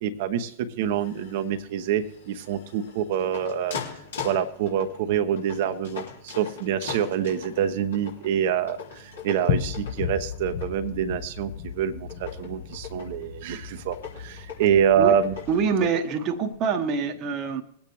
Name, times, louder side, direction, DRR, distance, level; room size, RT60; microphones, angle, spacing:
voice 1, 0.0-0.5 0.8-3.8 4.2-8.8 9.2-15.3, right 8 dB, 55° right, 10 dB, 1.0 m, -26 dB
sound 1, 0.8-16.5, left 6 dB, 75° left, 3.5 m, -41 dB
sound 2, 9.5-15.8, left 9 dB, 60° left, 1.2 m, -34 dB
voice 2, 15.5-17.6, right 5 dB, 40° right, 6 dB, 1.2 m, -25 dB
21.5 x 8.8 x 3.1 m, 0.68 s
figure-of-eight pair, 95°, 0 cm